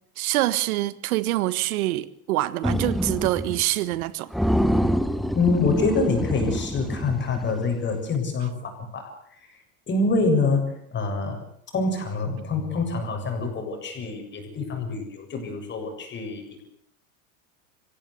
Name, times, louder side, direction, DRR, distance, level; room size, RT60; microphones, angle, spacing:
voice 1, 0.2-4.3, right 16 dB, 80° right, 1.6 m, -25 dB
sound 1, 2.6-3.6 3.9-4.0 4.3-7.7, equal, ahead, 0.9 m, -26 dB
voice 2, 5.3-9.1 9.9-11.4 11.7-16.6, left 3 dB, 25° left, 7.4 m, -26 dB
25.0 x 16.5 x 8.2 m
supercardioid pair, 135°, 42 cm